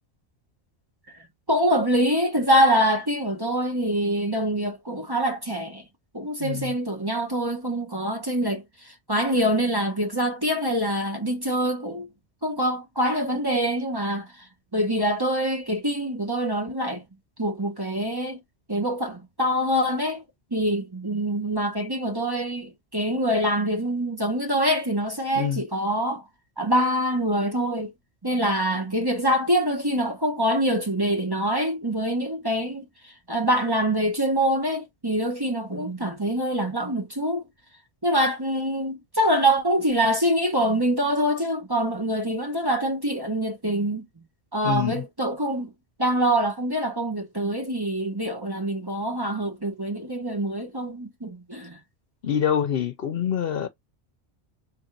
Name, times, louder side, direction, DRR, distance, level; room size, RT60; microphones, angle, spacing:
voice 1, 1.5-5.8 6.1-12.1 12.4-14.3 14.7-17.0 17.4-18.4 18.7-20.2 20.5-26.2 26.6-27.9 28.2-37.4 38.0-44.1 44.5-45.7 46.0-51.8, equal, 25° right, 0.9 m, -25 dB
voice 2, 6.4-6.7 25.3-25.6 44.6-45.0 52.2-53.7, left 9 dB, 65° left, 0.8 m, -25 dB
3.4 x 2.5 x 4.4 m
omnidirectional pair, 1.1 m